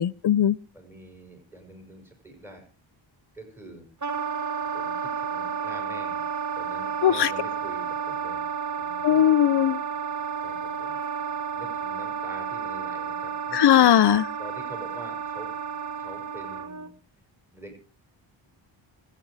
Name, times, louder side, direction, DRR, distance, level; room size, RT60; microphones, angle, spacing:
voice 1, 0.0-0.6 7.0-7.3 9.0-9.8 13.5-14.3, left 10 dB, 55° left, 0.8 m, -19 dB
voice 2, 0.7-2.7 3.3-3.9 4.7-6.3 6.6-8.4 8.8-9.2 10.4-11.0 11.5-14.0 14.4-15.5 16.0-16.9 17.5-17.8, right 1 dB, 5° right, 6.2 m, -45 dB
Wind instrument woodwind instrument, 4.0-16.9, right 7 dB, 35° right, 1.4 m, -31 dB
26.0 x 8.8 x 4.9 m
cardioid pair, 75°, 48 cm